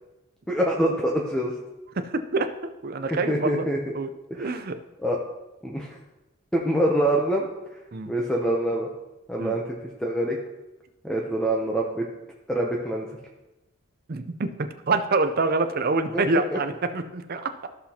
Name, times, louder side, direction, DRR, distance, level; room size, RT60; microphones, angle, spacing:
voice 1, 0.5-1.5 3.3-3.8 4.3-4.6 5.0-5.2 5.6-6.0 6.5-7.5 8.1-8.9 9.3-10.4 11.0-12.0 12.5-13.1 16.1-16.2 16.5-16.6, right 1 dB, 5° left, -1 dB, 0.6 m, -25 dB
voice 2, 2.0-2.5 2.8-3.7 3.9-4.1 4.4-4.8 7.9-8.1 9.4-9.6 14.1-17.7, right 3 dB, 40° right, 8 dB, 0.5 m, -26 dB
14.0 x 5.8 x 2.9 m, 1.0 s
head